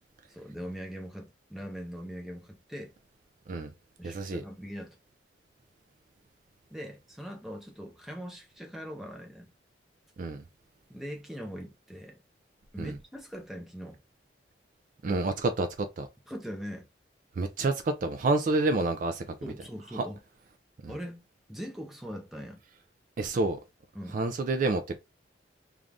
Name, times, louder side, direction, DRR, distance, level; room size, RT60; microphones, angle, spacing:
voice 1, 0.3-2.9 4.0-4.9 6.7-9.5 10.9-12.2 12.7-14.0 16.3-16.9 19.4-20.2 20.9-21.2 21.5-22.6 23.9-24.2, equal, ahead, 0.6 m, -41 dB
voice 2, 4.0-4.4 10.2-10.4 12.8-12.9 15.0-16.1 17.4-19.2 20.0-20.1 20.8-20.9 23.2-23.6 24.1-25.0, right 2 dB, 45° right, 0.3 m, -28 dB
2.5 x 2.4 x 3.2 m
head